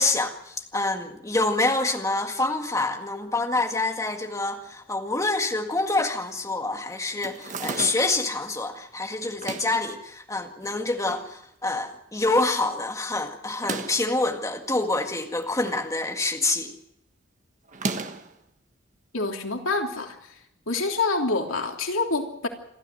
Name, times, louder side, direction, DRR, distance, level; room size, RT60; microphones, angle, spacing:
voice 1, 0.0-16.7, left 2 dB, 15° left, 4 dB, 1.8 m, -26 dB
sound 1, 7.2-8.2 9.3-9.9 10.6-11.3 11.6-11.7 11.9-12.0 13.5-14.1 15.2-15.9 16.2-16.6 17.7-18.3, right 3 dB, 40° right, 1.5 m, -34 dB
voice 2, 19.1-20.4 20.7-22.5, left 3 dB, 90° left, 3 dB, 3.1 m, -27 dB
28.0 x 13.0 x 7.8 m, 0.79 s
head